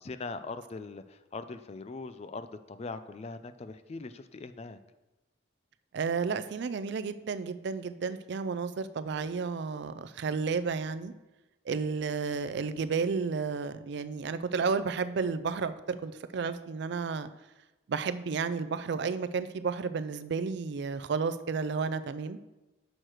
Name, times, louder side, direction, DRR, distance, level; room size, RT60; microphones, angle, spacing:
voice 1, 0.0-4.8, left 3 dB, 30° left, 12 dB, 0.3 m, -41 dB
voice 2, 5.9-11.1 11.7-17.3 17.9-22.4, right 5 dB, 55° right, 12 dB, 0.4 m, -32 dB
6.5 x 6.3 x 4.4 m, 1.1 s
head